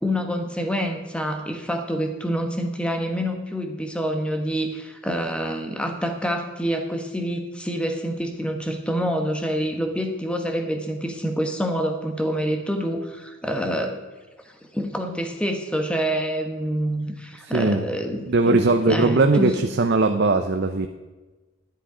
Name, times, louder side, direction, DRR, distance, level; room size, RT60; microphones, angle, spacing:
voice 1, 0.0-14.0 14.7-19.6, equal, 5° left, 4 dB, 1.2 m, -27 dB
voice 2, 18.3-20.9, right 3 dB, 50° right, 7 dB, 0.6 m, -19 dB
11.0 x 10.0 x 5.0 m, 1.2 s
head